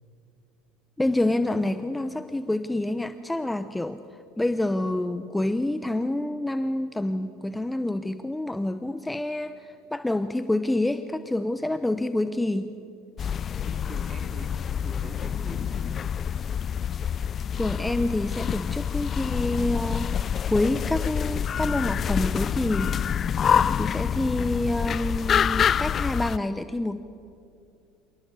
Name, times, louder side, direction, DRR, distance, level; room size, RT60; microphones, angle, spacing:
voice 1, 1.0-4.0 4.4-12.7 17.5-20.2 20.5-23.0 23.8-27.0, left 1 dB, 10° left, 11 dB, 0.8 m, -27 dB
sound 1, 13.2-26.4, left 8 dB, 40° left, 0.5 m, -27 dB
voice 2, 13.6-14.5 14.8-16.1, right 2 dB, 25° right, 5 dB, 3.9 m, -43 dB
26.5 x 17.5 x 8.4 m, 2.6 s
hypercardioid pair, 85°, 0 cm